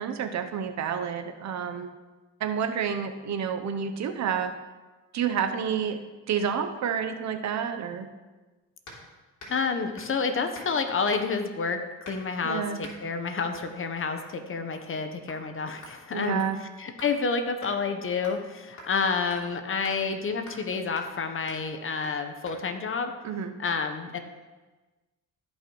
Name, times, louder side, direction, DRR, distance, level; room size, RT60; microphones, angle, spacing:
voice 1, 0.0-1.9 2.4-4.5 5.1-6.0 6.3-8.1 12.4-12.8 16.1-16.6 23.2-23.5, right 7 dB, 65° right, 7 dB, 0.8 m, -29 dB
sound 1, 8.9-9.1 9.4-9.6 10.0-10.2 10.5-10.7 11.1-11.4 12.0-12.4 12.8-13.0 13.5-13.7 14.2-14.4 14.7-15.0 15.3-15.4 15.8-17.2 17.6-17.7 18.2-18.5 18.8-18.9 19.3-19.4 19.8-20.0 20.5-20.7 21.0-21.2 21.5-21.6 22.0-22.2 22.5-22.6, left 1 dB, 65° left, 3.0 m, -46 dB
voice 2, 9.5-16.4 16.8-23.1 23.6-24.2, left 5 dB, 45° left, 7 dB, 1.0 m, -29 dB
15.0 x 5.5 x 3.1 m, 1.2 s
cardioid pair, 90°, 30 cm